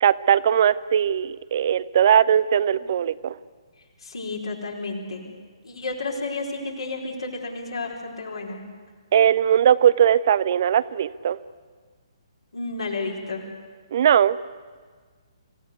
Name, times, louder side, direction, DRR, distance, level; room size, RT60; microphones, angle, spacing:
voice 1, 0.0-3.4 9.1-11.4 13.9-14.4, right 9 dB, 45° right, 18 dB, 0.6 m, -19 dB
voice 2, 4.0-5.2 5.6-8.6 12.5-13.4, left 3 dB, 65° left, 0 dB, 4.5 m, -31 dB
26.0 x 16.5 x 8.2 m, 1.5 s
figure-of-eight pair, 130°, 3 cm